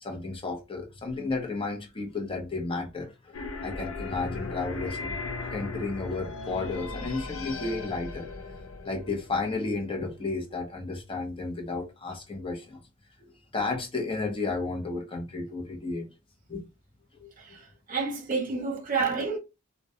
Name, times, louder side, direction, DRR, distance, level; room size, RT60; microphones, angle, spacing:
voice 1, 0.0-3.3 3.6-8.3 8.8-12.8 13.5-16.1 16.5-16.7 17.2-17.3, left 3 dB, 25° left, 0.6 m, -32 dB
sound 1, 3.3-10.1, left 3 dB, 90° left, 0.4 m, -37 dB
voice 2, 17.4-19.4, right 4 dB, 40° right, 0.8 m, -30 dB
2.2 x 2.1 x 2.7 m
head